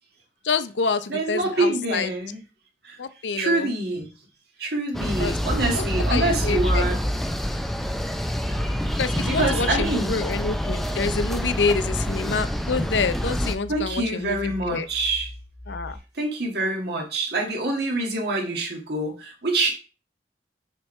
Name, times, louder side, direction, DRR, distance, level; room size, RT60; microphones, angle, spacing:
voice 1, 0.4-2.1 3.0-3.7 5.2-5.4 5.7-7.0 9.0-14.9 15.7-16.0, left 4 dB, 80° left, 12 dB, 0.7 m, -27 dB
voice 2, 1.1-2.4 2.8-3.0 3.4-4.1 4.6-7.0 8.5-8.6 9.3-10.1 13.7-15.3 16.1-19.7, right 2 dB, 65° right, 1 dB, 2.0 m, -26 dB
sound 1, 4.9-13.6, equal, ahead, 0.5 m, -26 dB
sound 2, 7.6-16.0, left 1 dB, 40° left, 1.1 m, -40 dB
10.0 x 4.6 x 3.2 m, 0.33 s
head